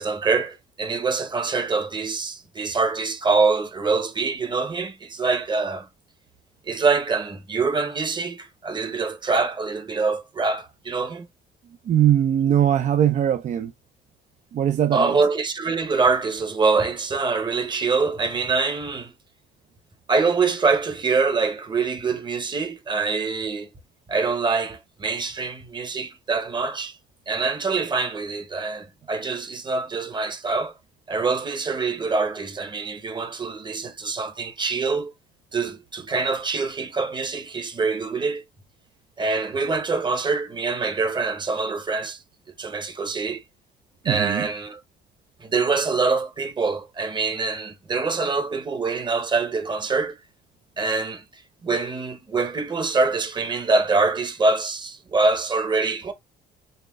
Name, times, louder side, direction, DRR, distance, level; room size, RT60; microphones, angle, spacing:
voice 1, 0.0-5.9 6.7-11.2 14.9-19.1 20.1-23.7 24.1-27.0 27.3-30.7 31.1-35.1 35.5-38.4 39.2-42.2 42.6-43.4 44.0-44.8 45.4-50.2 50.8-56.1, right 4 dB, 25° right, 1.1 m, -24 dB
voice 2, 11.9-13.7 14.5-15.2 44.1-44.5, right 10 dB, 45° right, 0.5 m, -20 dB
4.2 x 3.2 x 2.4 m
cardioid pair, 110°, 17 cm